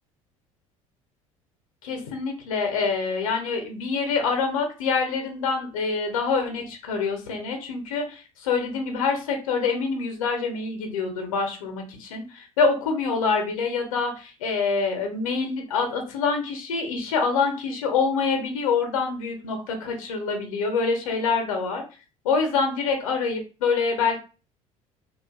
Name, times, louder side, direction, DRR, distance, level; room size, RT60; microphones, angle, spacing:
voice 1, 1.8-21.8 22.2-24.2, left 4 dB, 75° left, 4 dB, 0.7 m, -26 dB
2.5 x 2.3 x 2.3 m, 0.33 s
figure-of-eight pair, 60°, 18 cm